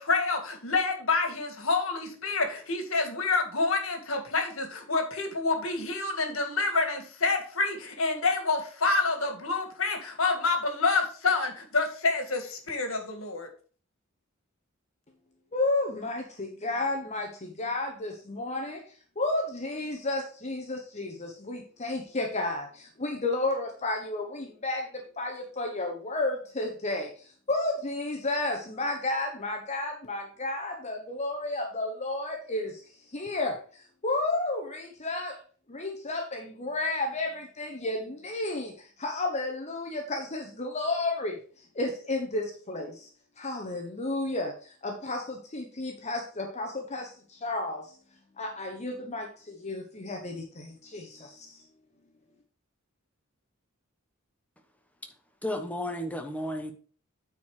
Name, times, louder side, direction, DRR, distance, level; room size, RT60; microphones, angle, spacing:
voice 1, 0.0-13.5, left 3 dB, 75° left, 5 dB, 1.9 m, -28 dB
voice 2, 15.5-18.8 19.2-32.8 33.1-35.4 35.7-43.1 43.4-47.9 48.4-51.6, left 2 dB, 35° left, 2 dB, 1.0 m, -32 dB
voice 3, 55.4-56.7, left 1 dB, 5° left, 5 dB, 1.0 m, -33 dB
9.2 x 4.6 x 4.8 m, 0.42 s
head